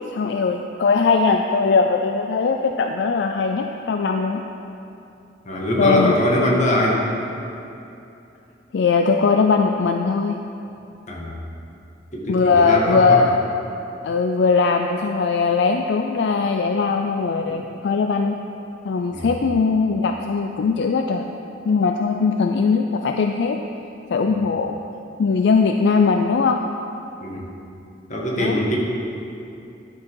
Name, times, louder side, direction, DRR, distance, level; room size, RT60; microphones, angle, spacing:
voice 1, 0.1-4.4 5.8-6.4 8.7-10.4 12.3-13.4 14.0-18.3 18.8-21.3 21.6-23.6 24.1-24.8 25.2-26.6 28.4-28.6, left 4 dB, 65° left, 4 dB, 0.4 m, -20 dB
voice 2, 5.4-7.0 11.1-11.3 12.1-13.3 19.1-19.3 27.2-27.5 28.1-28.8, left 1 dB, 40° left, -2 dB, 1.5 m, -22 dB
11.0 x 6.1 x 4.7 m, 2.7 s
head